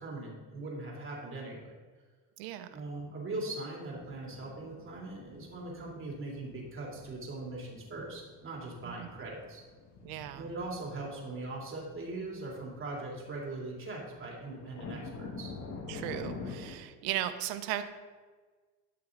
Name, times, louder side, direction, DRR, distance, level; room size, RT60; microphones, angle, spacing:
voice 1, 0.0-1.8 2.7-9.6 10.3-15.5, right 2 dB, 35° right, -3 dB, 3.3 m, -40 dB
voice 2, 2.4-2.7 8.8-9.1 10.0-10.5 15.9-17.8, right 12 dB, 75° right, 10 dB, 0.9 m, -36 dB
sound 1, 4.0-16.7, left 4 dB, 50° left, 1.9 m, -47 dB
13.5 x 5.9 x 4.0 m, 1.4 s
supercardioid pair, 95°, 36 cm